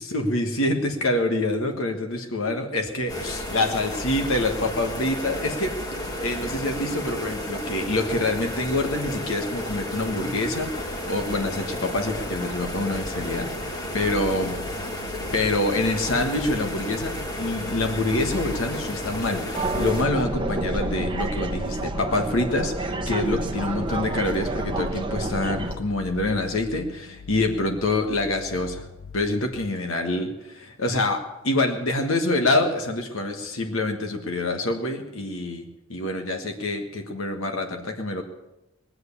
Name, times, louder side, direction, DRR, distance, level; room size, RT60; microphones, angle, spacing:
voice 1, 0.0-14.6 15.3-28.9 29.1-38.2, left 2 dB, 75° left, 5 dB, 1.5 m, -26 dB
sound 1, 3.1-20.0, left 1 dB, 20° left, 1.6 m, -32 dB
sound 2, 13.6-29.7, left 6 dB, 90° left, 0.6 m, -41 dB
sound 3, 19.6-25.8, right 2 dB, 20° right, 0.9 m, -29 dB
20.0 x 7.9 x 8.4 m, 0.96 s
head